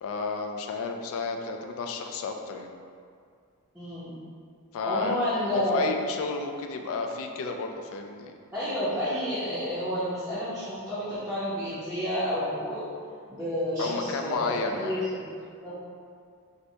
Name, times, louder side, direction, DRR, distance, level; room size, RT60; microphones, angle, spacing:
voice 1, 0.0-2.7 4.7-5.2 5.5-8.3 13.8-15.0, left 4 dB, 65° left, 5 dB, 0.3 m, -32 dB
voice 2, 3.7-4.1 4.8-5.9 8.5-12.9 13.3-15.2 15.6-15.8, left 1 dB, 5° right, -14 dB, 0.6 m, -30 dB
4.1 x 2.2 x 2.6 m, 2.2 s
head